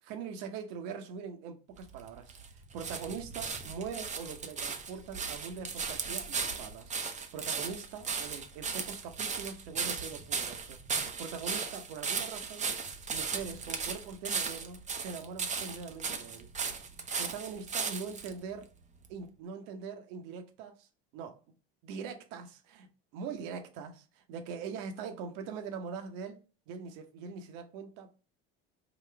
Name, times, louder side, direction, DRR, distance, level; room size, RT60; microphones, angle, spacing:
voice 1, 0.0-12.7 13.1-16.5 17.2-18.7 19.1-21.4 21.8-22.9 23.1-26.4 26.7-28.1, right 6 dB, 70° right, 0.9 m, -42 dB
sound 1, 1.8-18.3 19.0-19.1, right 5 dB, 25° right, 0.6 m, -36 dB
3.9 x 2.4 x 3.3 m
supercardioid pair, 90°, 31 cm